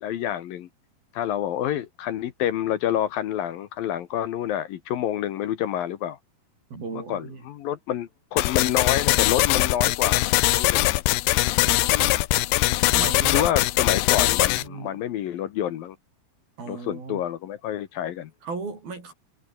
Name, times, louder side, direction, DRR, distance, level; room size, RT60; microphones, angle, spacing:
voice 1, 0.0-0.7 1.1-6.2 6.9-11.0 11.8-12.2 13.3-16.0 16.7-18.3, left 11 dB, 70° left, 2.8 m, -28 dB
voice 2, 6.7-7.4 11.6-11.8 12.8-13.5 14.6-14.9 16.6-17.2 18.4-19.1, right 4 dB, 65° right, 9.1 m, -35 dB
sound 1, 8.4-14.6, left 19 dB, 85° left, 2.9 m, -21 dB
omnidirectional pair, 4.7 m